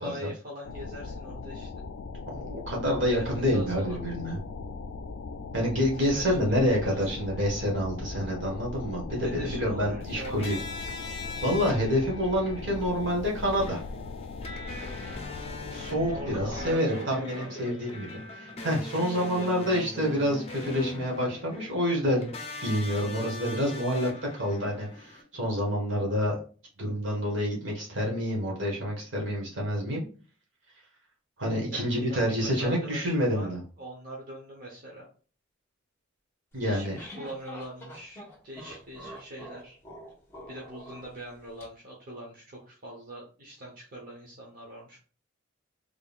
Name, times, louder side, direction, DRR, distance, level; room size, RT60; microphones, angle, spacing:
voice 1, 0.0-1.7 3.1-4.0 5.7-7.4 9.1-10.6 15.0-15.4 16.1-17.8 19.0-20.0 31.7-33.5 33.8-35.1 36.6-39.8 40.5-45.0, right 1 dB, 45° right, -4 dB, 1.0 m, -42 dB
sound 1, 0.6-16.8, left 4 dB, 90° left, 0.3 m, -39 dB
voice 2, 2.3-4.4 5.5-10.6 11.4-13.8 15.7-22.3 22.6-26.3 26.8-30.0 31.4-33.6 36.5-37.0, equal, 70° right, -2 dB, 1.5 m, -28 dB
sound 2, 10.0-25.2, left 2 dB, 30° left, 0.7 m, -41 dB
sound 3, 36.6-41.6, equal, 15° left, 1.1 m, -46 dB
3.5 x 3.5 x 2.4 m, 0.39 s
head